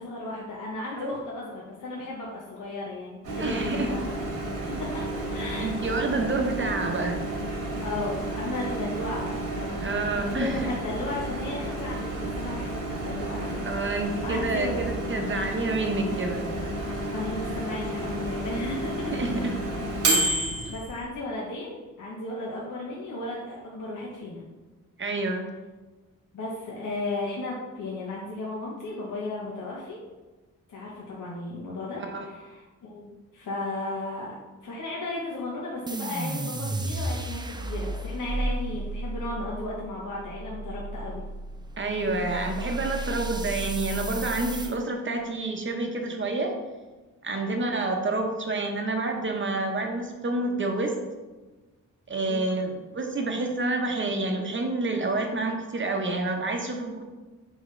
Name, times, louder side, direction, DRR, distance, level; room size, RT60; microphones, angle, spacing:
voice 1, 0.0-4.2 4.8-5.0 5.3-5.9 7.8-14.8 17.1-19.5 20.1-24.4 26.3-30.0 30.7-34.3 34.6-41.2 47.5-47.7 52.3-52.5, left 2 dB, 75° left, -4 dB, 1.1 m, -35 dB
Microwave oven, 3.2-21.0, right 1 dB, 75° right, 1.6 m, -31 dB
voice 2, 3.4-3.9 5.6-7.2 9.8-10.7 13.6-16.5 19.1-19.6 20.6-20.7 25.0-25.5 32.0-32.3 41.8-46.5 47.2-51.0 52.1-57.0, right 2 dB, 35° right, 3 dB, 0.9 m, -28 dB
sound 1, 35.9-44.7, right 2 dB, 15° right, 0.4 m, -33 dB
6.3 x 5.0 x 3.2 m, 1.2 s
wide cardioid pair, 120°, 32 cm